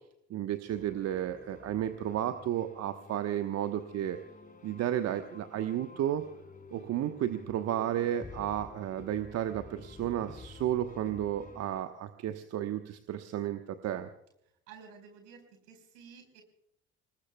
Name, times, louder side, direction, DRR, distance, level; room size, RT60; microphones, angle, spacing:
voice 1, 0.3-4.2 4.6-6.2 6.7-14.1, right 11 dB, 50° right, 8 dB, 1.2 m, -32 dB
sound 1, 0.7-11.8, left 3 dB, 25° left, 3.9 m, -51 dB
voice 2, 14.7-16.4, right 6 dB, 65° right, 6 dB, 4.7 m, -52 dB
27.5 x 19.5 x 2.3 m, 0.73 s
figure-of-eight pair, 55°, 33 cm